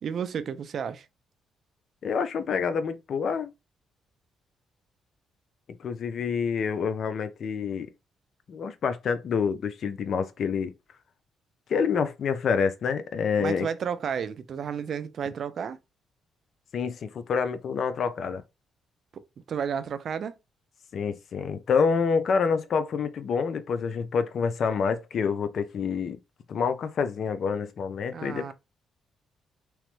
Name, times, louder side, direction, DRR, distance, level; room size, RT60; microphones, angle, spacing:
voice 1, 0.0-1.1 13.4-15.8 19.1-19.2 19.5-20.3 28.1-28.5, right 7 dB, 55° right, 0.3 m, -32 dB
voice 2, 2.0-3.5 5.8-7.9 8.5-10.7 11.7-13.7 16.7-18.4 20.9-26.2 26.5-28.5, left 6 dB, 60° left, 0.4 m, -27 dB
3.0 x 2.1 x 3.0 m
cardioid pair, 90°, 0 cm